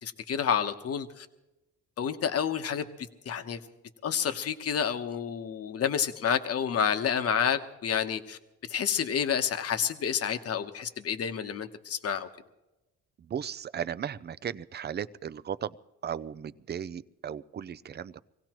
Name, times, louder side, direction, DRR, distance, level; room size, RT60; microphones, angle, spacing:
voice 1, 0.0-1.3 2.0-3.6 4.0-8.4 8.7-12.3, left 7 dB, 50° left, 8 dB, 1.1 m, -29 dB
voice 2, 13.3-15.7 16.0-18.2, right 8 dB, 35° right, 16 dB, 0.5 m, -36 dB
24.5 x 17.0 x 3.0 m, 1.0 s
cardioid pair, 90°, 30 cm